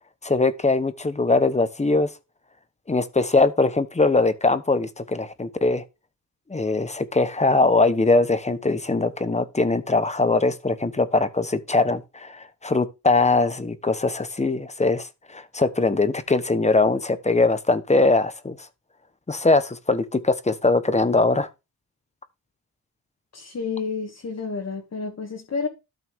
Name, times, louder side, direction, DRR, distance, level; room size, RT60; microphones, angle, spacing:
voice 1, 0.2-2.1 2.9-5.8 6.5-18.7 19.3-21.5, left 3 dB, 15° left, 1.0 m, -21 dB
voice 2, 23.3-25.7, left 5 dB, 40° left, 2.1 m, -30 dB
12.5 x 5.8 x 3.6 m
cardioid pair, 115°, 39 cm